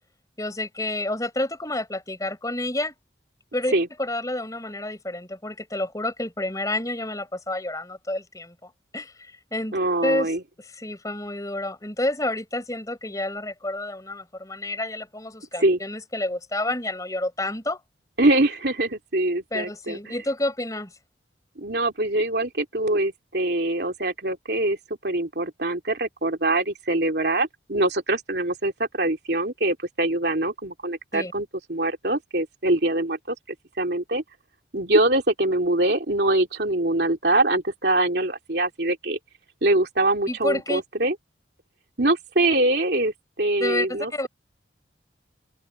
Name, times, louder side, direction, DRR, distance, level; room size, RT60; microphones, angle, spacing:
voice 1, 0.4-2.9 3.5-3.7 4.0-9.7 10.0-10.3 10.6-17.8 19.5-20.9 31.1-31.3 40.3-40.8 43.6-44.3, left 1 dB, 20° left, 4.3 m, -29 dB
voice 2, 9.7-10.4 15.6-15.8 18.2-20.0 21.6-24.8 25.0-34.2 34.7-39.2 39.6-41.1 42.0-44.3, right 2 dB, 60° right, 3.1 m, -23 dB
open air
head